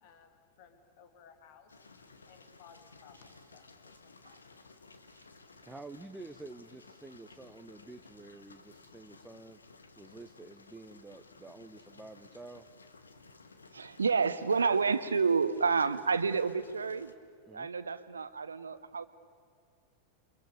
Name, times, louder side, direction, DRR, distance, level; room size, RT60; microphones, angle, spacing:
voice 1, 0.0-1.9 2.3-4.4, left 7 dB, 50° left, 8 dB, 2.5 m, -59 dB
sound 1, 1.7-17.1, left 3 dB, 75° left, 1.7 m, -57 dB
voice 2, 5.6-9.6 10.0-12.7 17.5-17.7, right 2 dB, 5° right, 5 dB, 0.9 m, -49 dB
voice 3, 13.7-17.1 17.5-19.0, right 5 dB, 75° right, 13 dB, 1.2 m, -29 dB
29.0 x 26.5 x 6.9 m, 2.2 s
figure-of-eight pair, 90°, 0 cm